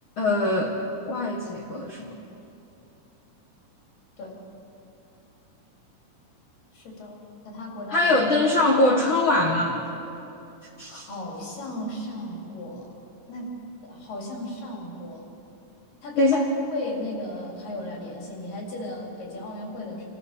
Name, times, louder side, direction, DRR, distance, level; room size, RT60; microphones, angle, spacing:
voice 1, 0.2-0.8 1.1-2.1 7.9-9.8 10.8-11.1 16.2-16.4, left 2 dB, 55° left, 0 dB, 1.5 m, -22 dB
voice 2, 6.7-8.3 10.9-12.9 13.3-13.5 13.8-15.3 16.0-20.1, left 1 dB, 90° left, -2 dB, 5.3 m, -35 dB
27.0 x 14.0 x 6.9 m, 2.9 s
omnidirectional pair, 3.8 m